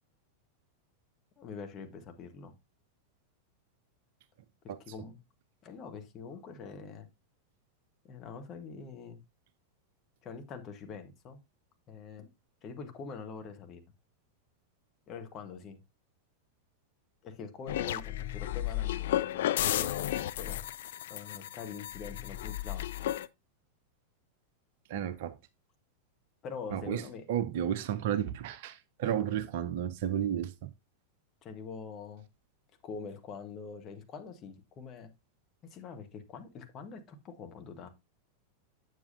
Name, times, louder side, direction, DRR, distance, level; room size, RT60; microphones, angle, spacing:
voice 1, 1.4-2.5 4.6-5.2 5.6-7.1 8.0-9.2 10.2-11.4 11.9-12.3 12.6-13.8 15.1-15.8 17.2-20.6 21.1-22.9 26.4-27.2 29.0-29.2 31.4-32.2 32.8-35.1 35.6-37.9, left 5 dB, 30° left, 1.2 m, -44 dB
sound 1, 17.7-23.3, left 13 dB, 55° left, 0.3 m, -33 dB
voice 2, 24.9-25.4 26.7-27.0 27.3-30.7, right 10 dB, 50° right, 0.6 m, -32 dB
8.1 x 7.2 x 2.6 m
figure-of-eight pair, 90°, 0 cm